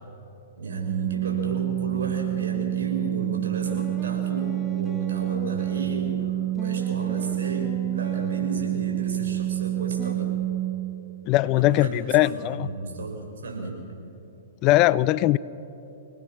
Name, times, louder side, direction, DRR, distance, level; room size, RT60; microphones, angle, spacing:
voice 1, 0.6-10.3 11.5-13.7, right 2 dB, 70° right, 1 dB, 6.3 m, -33 dB
Organ, 0.7-11.3, right 14 dB, 35° right, 0.5 m, -28 dB
sound 1, 3.7-6.1 6.6-9.1 10.0-10.2, equal, 5° left, 1.0 m, -42 dB
voice 2, 11.3-12.7 14.6-15.4, left 16 dB, 35° left, 19 dB, 0.5 m, -20 dB
27.5 x 19.0 x 6.3 m, 3.0 s
hypercardioid pair, 120°, 0 cm